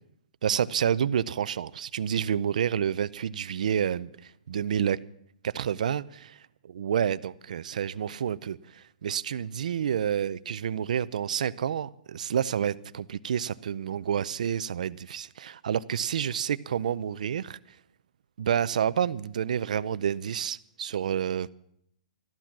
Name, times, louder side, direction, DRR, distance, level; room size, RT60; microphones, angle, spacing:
voice 1, 0.4-5.0 5.5-6.4 6.6-17.6 18.4-21.5, right 8 dB, 60° right, 0.5 m, -29 dB
13.5 x 12.5 x 6.0 m
hypercardioid pair, 175°, 5 cm